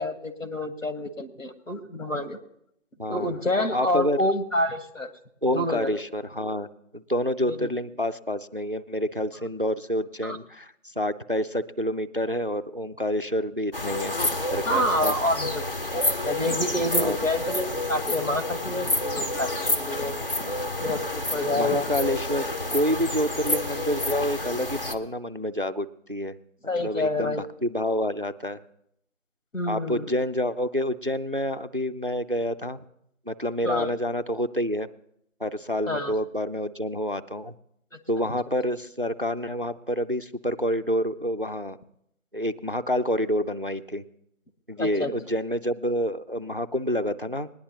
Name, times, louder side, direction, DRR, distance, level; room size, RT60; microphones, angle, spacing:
voice 1, 0.0-2.4 3.1-5.1 5.5-6.0 7.5-7.7 10.2-10.4 14.7-15.6 15.9-20.3 20.8-21.9 26.7-27.4 29.5-30.1 33.6-33.9 35.9-36.1 37.9-38.3 44.8-45.1, left 1 dB, 85° left, 9 dB, 1.8 m, -28 dB
voice 2, 3.0-3.3 3.7-4.2 5.4-6.7 6.9-15.1 16.9-17.2 20.4-20.6 21.5-22.5 22.7-26.4 26.8-28.6 29.7-32.8 33.3-34.9 35.4-37.5 38.1-41.8 42.3-44.0 44.7-47.5, equal, 45° right, 12 dB, 0.4 m, -28 dB
sound 1, 13.7-25.0, left 1 dB, 45° left, 1.0 m, -29 dB
20.5 x 10.0 x 2.9 m, 0.76 s
figure-of-eight pair, 180°, 38 cm